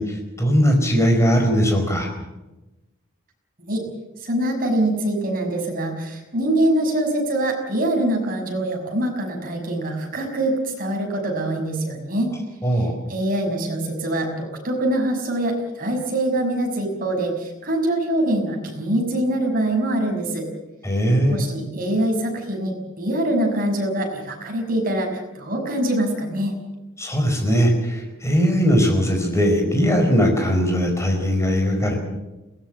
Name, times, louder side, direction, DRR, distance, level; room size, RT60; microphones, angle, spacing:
voice 1, 0.0-2.1 12.6-12.9 20.8-21.5 27.0-31.9, equal, 15° left, 3 dB, 4.8 m, -19 dB
voice 2, 4.2-12.3 12.7-20.5 21.3-26.5, right 1 dB, 45° right, 1 dB, 6.0 m, -24 dB
22.0 x 19.0 x 7.8 m, 1.0 s
head